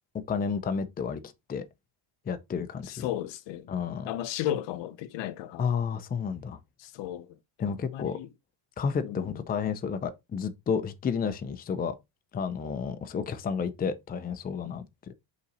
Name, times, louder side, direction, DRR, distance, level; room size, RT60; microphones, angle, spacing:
voice 1, 0.3-1.2 1.5-1.6 2.3-3.1 3.7-4.1 5.6-6.6 7.6-8.2 8.8-12.0 12.3-14.8, left 6 dB, 20° left, 0.5 m, -31 dB
voice 2, 2.8-3.7 4.0-5.7 6.8-7.4 7.7-8.3 9.0-9.4, left 12 dB, 75° left, 0.8 m, -35 dB
5.7 x 3.9 x 4.2 m
cardioid pair, 170°, 44 cm